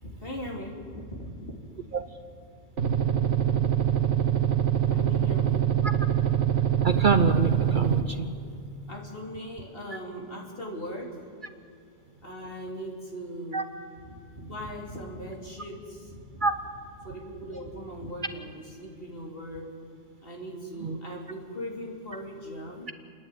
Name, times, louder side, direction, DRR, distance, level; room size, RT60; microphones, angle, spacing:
voice 1, 0.0-1.6 2.0-2.1 2.9-4.2 4.9-5.6 8.9-11.2 12.2-13.7 14.0-16.5 17.0-19.7 20.2-22.9, equal, 50° left, -1 dB, 3.4 m, -39 dB
sound 1, 2.8-8.0, right 10 dB, 75° right, 1.6 m, -24 dB
voice 2, 6.8-8.3 13.5-13.6 16.4-16.5 20.8-21.0, right 4 dB, 50° right, 9 dB, 0.8 m, -25 dB
29.0 x 11.0 x 9.3 m, 2.4 s
omnidirectional pair, 1.2 m